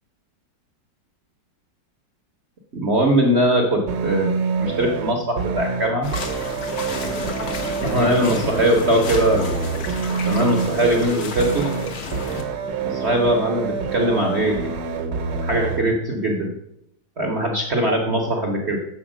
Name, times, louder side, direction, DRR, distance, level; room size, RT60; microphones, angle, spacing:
voice 1, 2.7-4.3 4.6-6.1 7.8-9.5 10.2-11.7 12.8-14.6 15.4-16.5 17.2-18.8, right 1 dB, 50° right, 1 dB, 0.8 m, -21 dB
sound 1, 3.9-15.9, right 5 dB, 70° right, 1.3 m, -26 dB
sound 2, 6.0-12.4, left 3 dB, 50° left, 0.8 m, -31 dB
7.0 x 4.5 x 6.1 m, 0.78 s
omnidirectional pair, 2.1 m